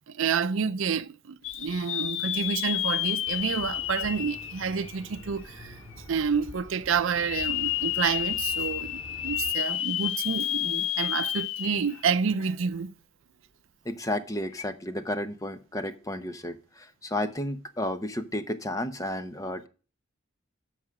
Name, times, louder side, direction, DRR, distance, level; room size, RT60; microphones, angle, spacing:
voice 1, 0.1-5.8 6.1-12.9, right 6 dB, 75° right, 0.5 m, -29 dB
sound 1, 1.4-5.4 5.9-6.0 7.1-12.0 12.4-12.5 14.5-14.6, left 13 dB, 70° left, 0.5 m, -30 dB
sound 2, 3.3-9.5, equal, 10° right, 6.1 m, -47 dB
voice 2, 13.8-19.7, left 1 dB, 15° left, 0.8 m, -32 dB
13.5 x 4.9 x 4.8 m
head